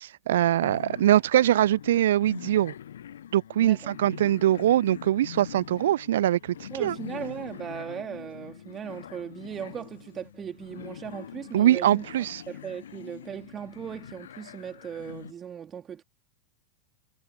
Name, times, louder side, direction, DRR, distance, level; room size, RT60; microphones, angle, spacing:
voice 1, 0.0-2.7 3.3-7.0 11.5-12.4, right 12 dB, 60° right, 0.3 m, -23 dB
sound 1, 0.6-15.3, left 10 dB, 65° left, 1.4 m, -43 dB
voice 2, 3.6-4.0 6.7-12.0 12.5-16.0, right 8 dB, 25° right, 3.5 m, -38 dB
figure-of-eight pair, 90°, 0 cm